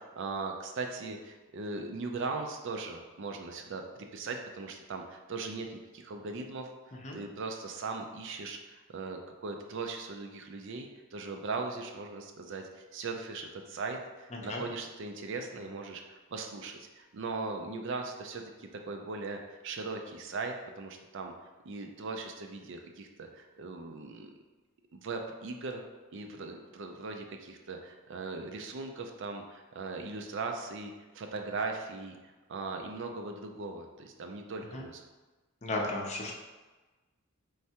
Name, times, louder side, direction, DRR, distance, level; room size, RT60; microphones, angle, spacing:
voice 1, 0.2-6.7 7.1-21.3 21.6-24.3 24.9-25.8 26.1-35.0, right 3 dB, 55° right, 3 dB, 0.4 m, -39 dB
voice 2, 14.3-14.6 34.7-34.8 35.6-36.3, left 2 dB, 30° left, -1 dB, 0.6 m, -34 dB
4.5 x 3.3 x 2.8 m, 1.2 s
head